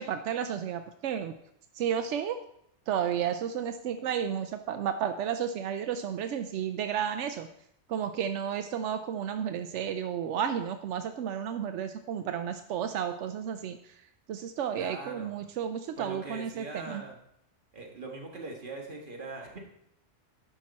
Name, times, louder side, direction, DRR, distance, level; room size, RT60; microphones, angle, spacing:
voice 1, 0.0-1.3 1.8-2.4 2.9-7.5 7.9-13.8 14.3-17.0, right 8 dB, 90° right, 8 dB, 0.9 m, -32 dB
voice 2, 14.7-15.3 16.0-17.2 17.7-19.6, right 3 dB, 50° right, 0 dB, 1.8 m, -41 dB
10.5 x 5.9 x 4.2 m, 0.73 s
omnidirectional pair, 1.2 m